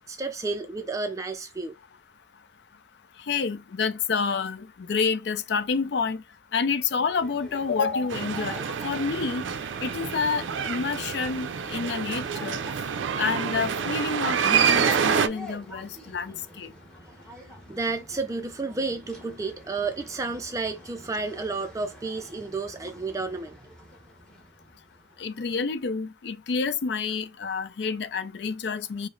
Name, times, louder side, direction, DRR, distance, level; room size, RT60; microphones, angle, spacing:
voice 1, 0.1-1.7 17.3-23.6, right 3 dB, 15° right, 0.3 m, -31 dB
voice 2, 3.3-6.2 6.5-9.5 9.8-12.6 13.2-16.7 25.2-29.1, left 5 dB, 65° left, 0.4 m, -28 dB
sound 1, 7.0-25.5, equal, 5° left, 1.0 m, -46 dB
sound 2, 8.1-15.3, right 7 dB, 85° right, 0.4 m, -27 dB
4.9 x 2.0 x 3.8 m
head